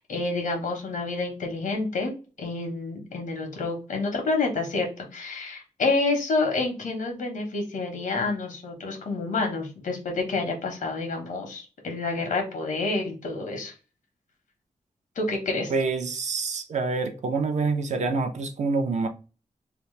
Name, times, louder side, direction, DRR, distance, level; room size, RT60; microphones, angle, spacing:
voice 1, 0.0-2.1 2.4-13.7 15.2-15.7, left 3 dB, 90° left, 1.0 m, -28 dB
voice 2, 15.7-19.1, right 4 dB, 65° right, 0.5 m, -26 dB
2.8 x 2.1 x 3.1 m
wide cardioid pair, 145°, 13 cm